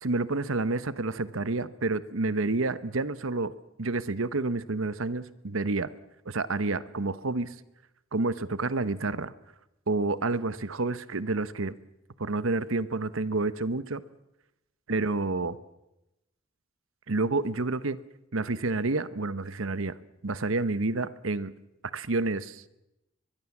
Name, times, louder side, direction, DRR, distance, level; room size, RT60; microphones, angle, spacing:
voice 1, 0.0-3.5 3.8-5.9 6.3-7.5 8.1-9.3 9.9-11.8 12.2-14.0 14.9-15.6 17.1-18.0 18.3-19.9 20.2-21.5 21.9-22.6, right 3 dB, 80° right, 15 dB, 1.1 m, -29 dB
23.0 x 22.0 x 7.3 m, 0.91 s
head